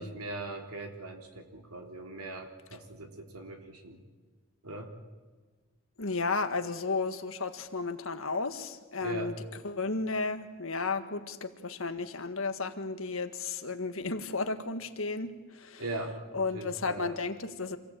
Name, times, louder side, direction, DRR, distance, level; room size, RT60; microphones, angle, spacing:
voice 1, 0.0-4.0 4.6-4.9 9.0-9.3 15.8-17.2, right 2 dB, 90° right, 3 dB, 3.5 m, -40 dB
voice 2, 6.0-9.3 9.6-15.8 16.3-17.8, left 3 dB, 70° left, 8 dB, 1.7 m, -33 dB
26.5 x 17.5 x 8.7 m, 1.4 s
head